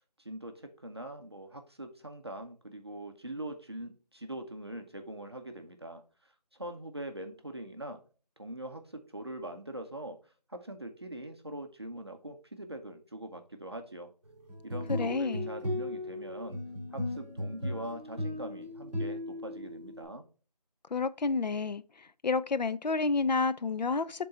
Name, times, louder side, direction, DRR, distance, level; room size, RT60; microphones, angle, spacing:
voice 1, 0.2-6.3 6.6-8.0 8.4-10.2 10.5-14.1 14.6-16.6 16.9-20.2, right 1 dB, 40° right, 0.7 m, -42 dB
sound 1, 14.5-20.0, left 1 dB, 5° left, 2.5 m, -36 dB
voice 2, 14.9-15.5 20.9-21.8 22.2-24.3, left 4 dB, 90° left, 0.6 m, -29 dB
6.5 x 3.8 x 4.1 m
figure-of-eight pair, 180°, 21 cm